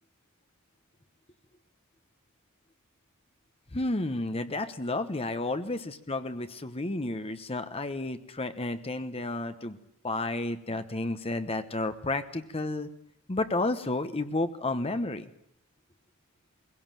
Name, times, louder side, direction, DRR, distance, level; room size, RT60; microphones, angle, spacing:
voice 1, 3.7-9.8 10.0-12.9 13.3-15.3, left 2 dB, 30° left, 9 dB, 1.1 m, -31 dB
22.0 x 17.0 x 9.1 m, 0.75 s
head